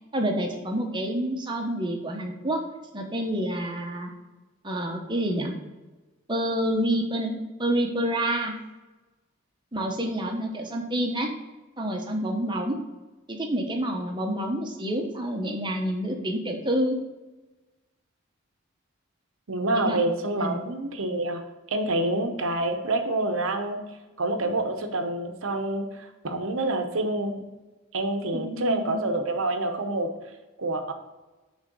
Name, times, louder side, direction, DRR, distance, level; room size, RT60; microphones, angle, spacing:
voice 1, 0.1-2.6 2.9-4.1 4.6-5.5 6.3-8.6 9.7-11.3 11.8-12.8 13.3-17.0 19.7-20.0 20.4-20.6 28.3-29.0, right 1 dB, 20° right, 2 dB, 0.9 m, -28 dB
voice 2, 19.5-21.4 21.7-23.8 24.2-27.4 27.9-30.1 30.6-30.9, right 2 dB, 80° right, 6 dB, 0.9 m, -27 dB
6.4 x 3.5 x 6.0 m, 1.2 s
head